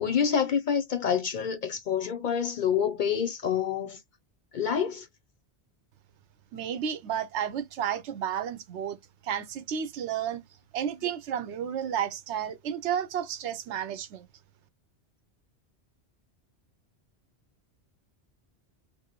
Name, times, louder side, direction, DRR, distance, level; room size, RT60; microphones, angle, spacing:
voice 1, 0.0-4.0 4.5-5.1, left 7 dB, 55° left, 0.6 m, -27 dB
voice 2, 6.5-9.0 9.2-10.4 10.7-14.3, right 9 dB, 85° right, 0.9 m, -32 dB
2.9 x 2.6 x 2.8 m
omnidirectional pair, 1.1 m